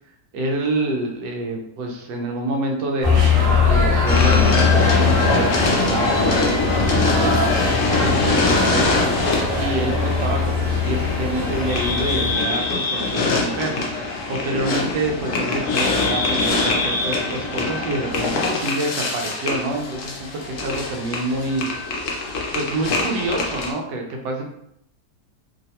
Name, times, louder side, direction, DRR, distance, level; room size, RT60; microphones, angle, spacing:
voice 1, 0.3-9.0 9.6-13.8 14.3-21.6 22.5-24.5, right 2 dB, 85° right, 1 dB, 1.2 m, -27 dB
sound 1, 3.0-12.3, left 4 dB, 50° right, 0.8 m, -21 dB
sound 2, 4.1-23.7, left 3 dB, 65° left, 0.8 m, -23 dB
3.1 x 2.2 x 2.7 m, 0.73 s
omnidirectional pair, 1.9 m